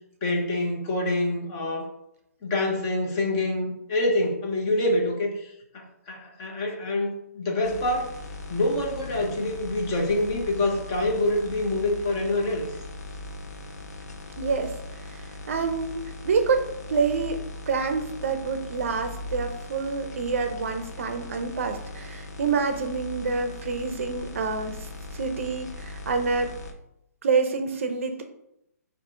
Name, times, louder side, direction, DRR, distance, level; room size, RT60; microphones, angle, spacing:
voice 1, 0.2-1.9 2.4-8.2 8.5-12.7, left 1 dB, 20° left, 1 dB, 0.5 m, -26 dB
sound 1, 7.6-26.7, left 2 dB, 80° left, 0.7 m, -39 dB
voice 2, 14.4-14.7 15.1-17.4 17.7-24.9 25.1-26.5 27.2-28.2, right 4 dB, 50° right, 6 dB, 0.5 m, -27 dB
4.1 x 2.5 x 3.6 m, 0.81 s
hypercardioid pair, 170°, 9 cm